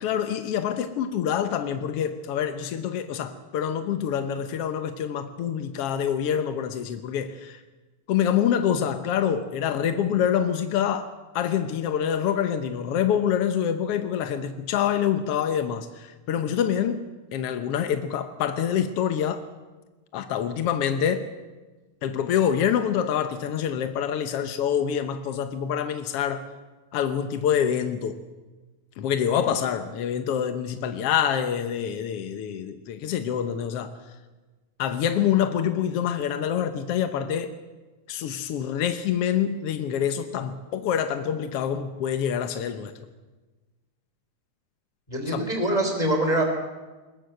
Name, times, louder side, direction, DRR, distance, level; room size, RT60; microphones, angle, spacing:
voice 1, 0.0-7.6 8.1-19.4 20.1-21.3 22.0-26.5 26.9-28.2 29.0-33.9 34.8-37.5 38.1-42.9 45.3-45.5, left 9 dB, 70° left, 8 dB, 1.4 m, -26 dB
voice 2, 45.1-46.4, right 1 dB, 10° left, 3 dB, 3.0 m, -24 dB
21.5 x 20.0 x 7.8 m, 1.2 s
omnidirectional pair, 3.9 m